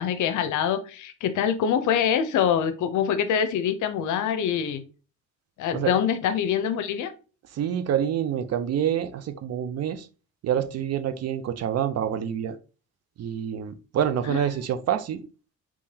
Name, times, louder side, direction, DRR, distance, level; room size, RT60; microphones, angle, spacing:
voice 1, 0.0-4.8 5.6-7.1 14.3-14.5, left 8 dB, 75° left, 10 dB, 0.6 m, -25 dB
voice 2, 7.6-10.1 10.4-12.6 13.2-15.2, right 9 dB, 55° right, 11 dB, 0.5 m, -27 dB
3.8 x 3.0 x 2.7 m, 0.35 s
cardioid pair, 90°, 30 cm